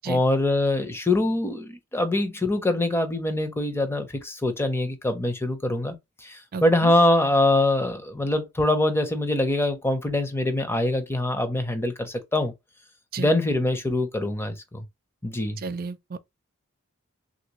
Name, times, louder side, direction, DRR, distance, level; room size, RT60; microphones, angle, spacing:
voice 1, 0.1-12.5 13.2-14.8 15.2-15.6, left 1 dB, 10° left, 0.5 m, -24 dB
voice 2, 6.5-6.9 13.1-13.3 15.6-16.2, right 4 dB, 45° right, 0.4 m, -33 dB
3.3 x 2.5 x 2.9 m
head